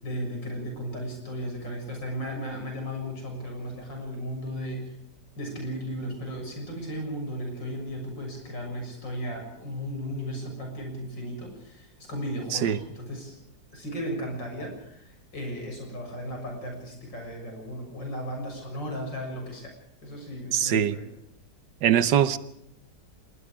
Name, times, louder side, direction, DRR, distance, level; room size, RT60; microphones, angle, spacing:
voice 1, 0.0-5.0 5.4-13.4 13.7-19.7 20.0-21.1, equal, 90° left, 7.6 m, -35 dB
voice 2, 20.5-21.0 21.8-22.4, right 9 dB, 80° right, 1.7 m, -22 dB
26.0 x 21.0 x 5.0 m
omnidirectional pair, 1.9 m